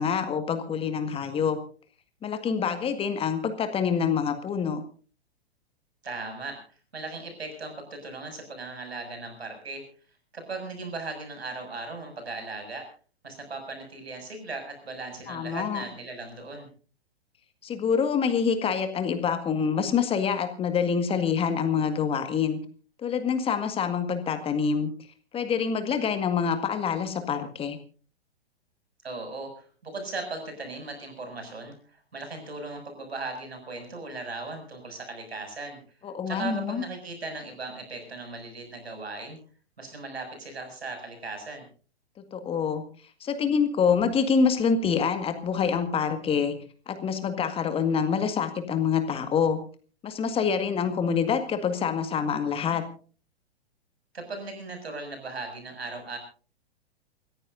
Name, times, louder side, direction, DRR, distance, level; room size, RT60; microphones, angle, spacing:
voice 1, 0.0-1.6 2.2-4.8 15.3-15.8 17.6-22.6 23.0-24.9 25.3-27.8 36.0-36.8 42.3-42.8 43.2-46.6 46.9-49.6 50.0-52.8, left 6 dB, 15° left, 8 dB, 1.9 m, -26 dB
voice 2, 6.0-6.6 6.9-9.8 10.3-12.9 13.2-16.7 29.0-35.8 36.3-39.4 39.8-41.6 54.1-56.2, right 3 dB, 75° right, 5 dB, 6.9 m, -38 dB
29.0 x 15.0 x 2.6 m, 0.39 s
figure-of-eight pair, 110°, 32 cm